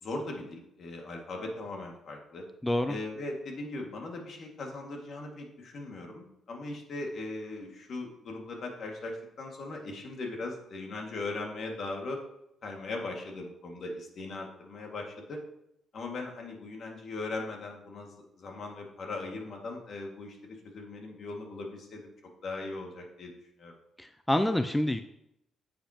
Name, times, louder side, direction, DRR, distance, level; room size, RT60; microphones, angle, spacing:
voice 1, 0.0-2.5 2.9-12.2 12.6-15.4 15.9-22.1 22.4-23.3 23.6-23.7, left 2 dB, 55° left, 1 dB, 2.1 m, -39 dB
voice 2, 2.6-3.0 24.0-25.0, left 1 dB, 10° left, 8 dB, 0.5 m, -27 dB
9.8 x 7.2 x 3.0 m, 0.80 s
cardioid pair, 90°, 0 cm